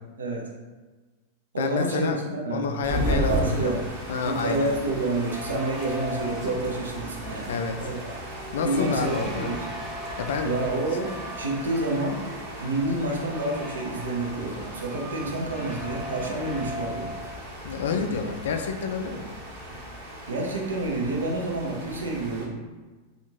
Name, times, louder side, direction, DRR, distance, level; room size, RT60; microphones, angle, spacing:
voice 1, 0.2-0.5 1.5-3.8 4.2-8.0 8.6-9.6 10.4-12.2 12.6-17.1 20.3-22.5, right 2 dB, 70° right, -1 dB, 0.6 m, -29 dB
voice 2, 1.6-3.7 4.1-4.7 7.5-8.0 8.5-9.5 10.2-10.5 10.9-11.0 17.6-19.4, left 5 dB, 60° left, 5 dB, 0.3 m, -29 dB
Air tone Rain London Night, 2.8-22.4, equal, 45° right, 0.9 m, -36 dB
sound 1, 4.2-17.6, equal, 20° right, 0.7 m, -39 dB
3.4 x 2.5 x 2.9 m, 1.3 s
figure-of-eight pair, 90°, 0 cm